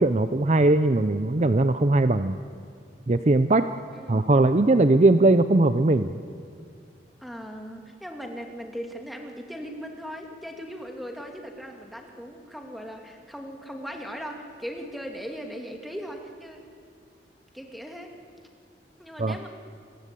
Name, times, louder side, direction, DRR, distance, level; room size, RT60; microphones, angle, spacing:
voice 1, 0.0-2.4 3.1-3.7 4.1-6.1 19.2-19.4, right 2 dB, 40° right, 11 dB, 0.6 m, -20 dB
voice 2, 3.9-4.3 5.0-5.3 7.2-16.6 17.5-18.2 19.0-19.5, equal, ahead, 2 dB, 2.3 m, -38 dB
28.0 x 21.5 x 8.4 m, 2.2 s
head